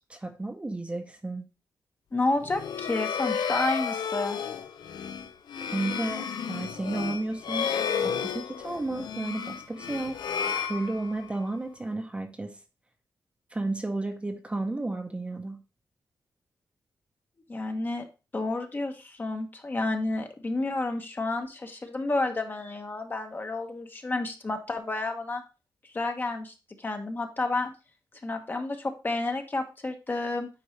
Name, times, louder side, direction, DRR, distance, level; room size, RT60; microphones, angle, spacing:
voice 1, 0.1-1.4 5.7-7.7 8.0-10.2 10.6-12.6 13.5-15.6, right 2 dB, 15° right, 5 dB, 0.8 m, -32 dB
voice 2, 2.1-4.4 17.5-18.0 18.3-25.4 25.9-27.7 28.2-30.5, left 2 dB, 25° left, 5 dB, 1.0 m, -30 dB
sound 1, 2.4-11.5, left 7 dB, 80° left, 0.6 m, -32 dB
8.7 x 4.6 x 3.1 m, 0.30 s
wide cardioid pair, 140°, 7 cm